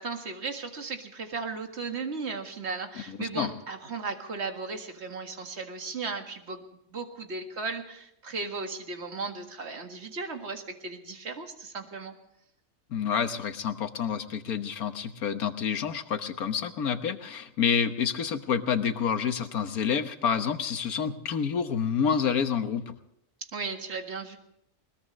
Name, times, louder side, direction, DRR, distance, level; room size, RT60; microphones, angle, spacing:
voice 1, 0.0-6.6 6.9-12.2 23.4-24.4, right 4 dB, 50° right, 5 dB, 2.1 m, -36 dB
voice 2, 3.2-3.5 12.9-22.9, left 7 dB, 90° left, 8 dB, 1.7 m, -28 dB
21.0 x 21.0 x 3.2 m, 0.78 s
omnidirectional pair, 1.5 m